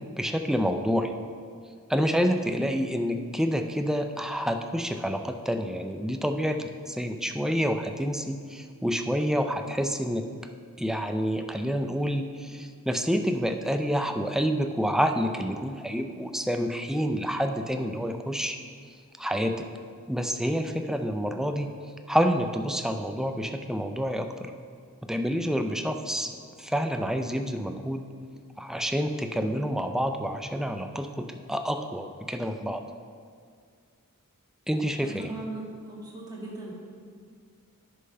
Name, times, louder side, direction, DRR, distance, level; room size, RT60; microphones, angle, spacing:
voice 1, 0.2-1.1 1.9-10.2 10.8-18.6 19.2-19.7 20.1-21.7 22.1-24.5 25.0-26.3 26.6-28.0 28.6-32.8 34.7-35.3, equal, ahead, 6 dB, 0.4 m, -28 dB
voice 2, 35.0-36.7, right 2 dB, 15° right, -5 dB, 2.0 m, -38 dB
10.0 x 5.5 x 5.6 m, 2.1 s
head